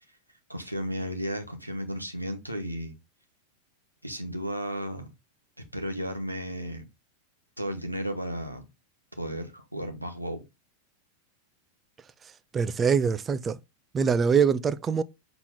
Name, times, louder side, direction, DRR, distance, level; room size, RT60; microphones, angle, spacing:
voice 1, 0.5-2.9 4.0-5.1 5.7-6.8 7.6-8.6 9.2-10.4, equal, 90° right, 1.3 m, -34 dB
voice 2, 12.5-13.6 13.9-15.0, right 6 dB, 20° right, 0.5 m, -23 dB
7.2 x 3.8 x 3.7 m
figure-of-eight pair, 90°, 0 cm